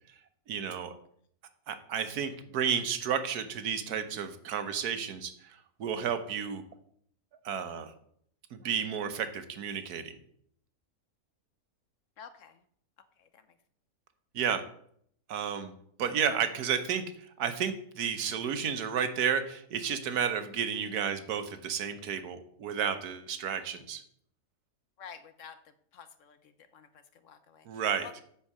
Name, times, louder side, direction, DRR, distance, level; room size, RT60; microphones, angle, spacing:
voice 1, 0.5-0.9 1.7-6.6 7.4-7.9 8.5-10.2 14.3-14.6 15.3-15.7 16.0-24.0 27.7-28.1, right 7 dB, 80° right, 9 dB, 1.4 m, -32 dB
voice 2, 12.2-12.6 13.2-13.4 25.0-25.6 25.9-28.2, left 7 dB, 65° left, 11 dB, 0.9 m, -50 dB
10.0 x 4.6 x 7.2 m, 0.66 s
omnidirectional pair, 1.6 m